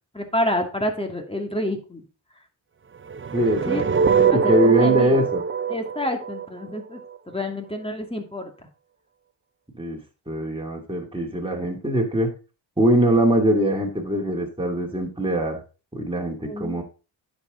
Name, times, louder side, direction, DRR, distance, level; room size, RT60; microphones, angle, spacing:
voice 1, 0.1-2.0 3.7-3.8 4.3-5.3 5.7-7.0 7.3-8.5 16.4-16.8, left 1 dB, 10° left, 4 dB, 2.4 m, -28 dB
sound 1, 3.1-7.2, right 7 dB, 25° right, 0.5 m, -22 dB
voice 2, 3.3-5.4 9.7-10.0 10.3-12.3 12.8-15.6 15.9-16.8, right 1 dB, 10° right, -1 dB, 2.9 m, -22 dB
9.7 x 7.0 x 3.9 m, 0.33 s
cardioid pair, 60°, 48 cm